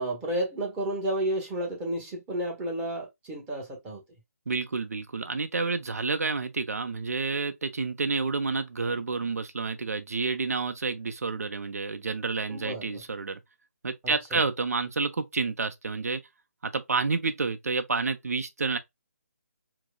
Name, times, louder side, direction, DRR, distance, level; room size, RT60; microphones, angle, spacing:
voice 1, 0.0-4.0 12.5-13.0 14.0-14.4, right 1 dB, 15° right, 1.0 m, -32 dB
voice 2, 4.5-13.4 13.8-16.2 16.6-18.8, right 4 dB, 75° right, 0.6 m, -29 dB
4.6 x 2.0 x 2.2 m
figure-of-eight pair, 145°, 8 cm